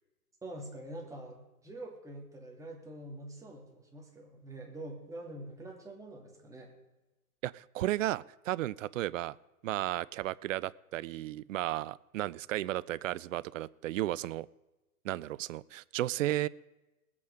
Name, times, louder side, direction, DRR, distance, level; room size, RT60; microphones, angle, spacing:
voice 1, 0.4-6.7, right 1 dB, 5° right, -1 dB, 2.8 m, -45 dB
voice 2, 7.4-9.3 9.6-14.5 15.0-16.5, right 15 dB, 60° right, 21 dB, 0.6 m, -34 dB
20.0 x 8.5 x 5.0 m, 1.1 s
hypercardioid pair, 120°, 44 cm